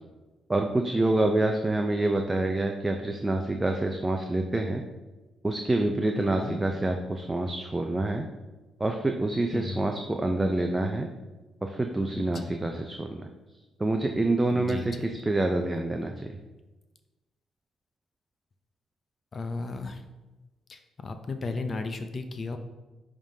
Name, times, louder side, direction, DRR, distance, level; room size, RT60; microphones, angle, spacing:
voice 1, 0.5-4.8 5.4-8.3 8.8-11.1 11.6-13.3 13.8-16.3, right 2 dB, 15° right, 3 dB, 0.5 m, -27 dB
voice 2, 6.2-6.6 9.5-9.9 12.1-12.6 14.5-15.1 19.3-20.0 20.7-22.6, left 3 dB, 40° left, 7 dB, 0.5 m, -34 dB
10.5 x 3.6 x 2.7 m, 1.1 s
cardioid pair, 90°, 0 cm